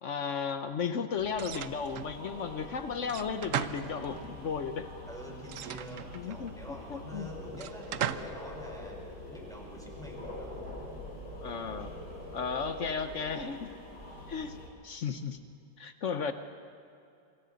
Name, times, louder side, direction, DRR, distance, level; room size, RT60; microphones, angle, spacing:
voice 1, 0.0-4.9 6.1-7.3 11.4-11.9 12.3-13.7 14.3-14.6 14.8-15.4 15.8-16.3, left 6 dB, 60° left, 9 dB, 0.8 m, -34 dB
sound 1, 1.2-14.7, left 1 dB, 80° left, 5.4 m, -44 dB
sound 2, 1.3-2.2 3.1-4.4 5.4-6.5 7.5-8.4, right 10 dB, 90° right, 0.7 m, -37 dB
voice 2, 5.1-10.7, equal, ahead, -2 dB, 4.6 m, -47 dB
27.0 x 24.5 x 4.0 m, 2.5 s
omnidirectional pair, 2.2 m